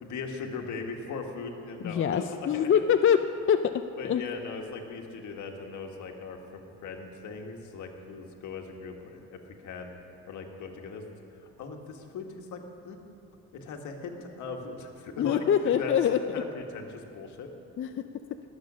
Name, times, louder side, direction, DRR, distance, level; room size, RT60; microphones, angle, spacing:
voice 1, 0.0-2.9 4.0-9.9 10.3-11.1 11.4-13.0 13.5-15.4 15.8-15.9 16.3-17.5, left 4 dB, 75° left, 3 dB, 1.6 m, -39 dB
voice 2, 1.8-3.2 3.5-4.2 15.2-16.2 17.8-18.0, left 8 dB, 45° left, 8 dB, 0.5 m, -24 dB
20.0 x 7.6 x 6.2 m, 2.6 s
cardioid pair, 90°, 30 cm